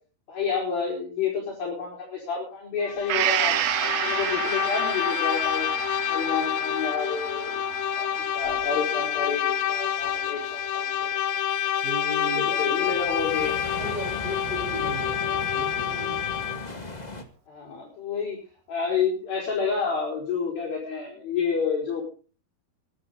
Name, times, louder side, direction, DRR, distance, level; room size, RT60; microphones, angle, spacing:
voice 1, 0.3-5.7 6.1-11.1 12.4-13.6 17.5-18.4 18.7-22.1, left 5 dB, 70° left, -4 dB, 6.6 m, -29 dB
Bowed string instrument, 2.9-16.8, left 9 dB, 90° left, 1.5 m, -28 dB
Gong, 3.1-10.7 11.1-11.2, right 12 dB, 90° right, 3.0 m, -31 dB
voice 2, 11.8-12.6 13.8-16.2, right 1 dB, 25° right, 2 dB, 8.6 m, -36 dB
sound 1, 12.7-17.2, left 2 dB, 35° left, 0.6 m, -37 dB
22.5 x 12.0 x 4.0 m, 0.38 s
omnidirectional pair, 4.4 m